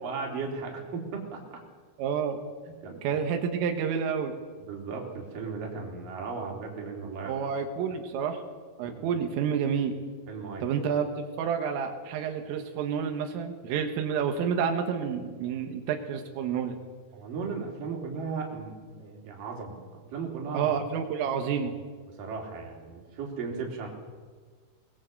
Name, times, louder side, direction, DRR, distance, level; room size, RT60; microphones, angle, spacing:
voice 1, 0.0-1.6 2.8-3.0 4.6-7.5 8.8-9.2 10.3-10.9 17.1-20.8 22.1-23.9, right 4 dB, 45° right, 0 dB, 4.9 m, -36 dB
voice 2, 2.0-2.4 3.0-4.3 7.3-8.4 8.8-10.0 10.6-11.1 11.4-16.8 20.5-21.8, right 7 dB, 85° right, 5 dB, 4.1 m, -29 dB
22.0 x 21.0 x 7.9 m, 1.5 s
omnidirectional pair, 5.7 m